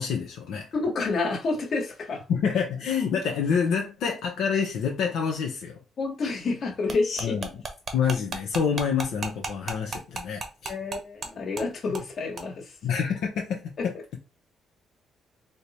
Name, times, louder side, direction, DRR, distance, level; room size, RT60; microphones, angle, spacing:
voice 1, 0.0-0.7 2.3-5.8 7.2-7.6 7.9-10.7 12.8-14.2, left 6 dB, 85° left, 0.6 m, -27 dB
voice 2, 0.7-2.2 6.0-7.4 10.6-12.7 13.8-13.9, left 3 dB, 55° left, 1.3 m, -29 dB
sound 1, 6.9-11.3 11.6-11.7 11.9-12.1 12.4-12.5, right 3 dB, 45° right, 0.8 m, -34 dB
3.2 x 2.0 x 4.1 m
cardioid pair, 90°, 0 cm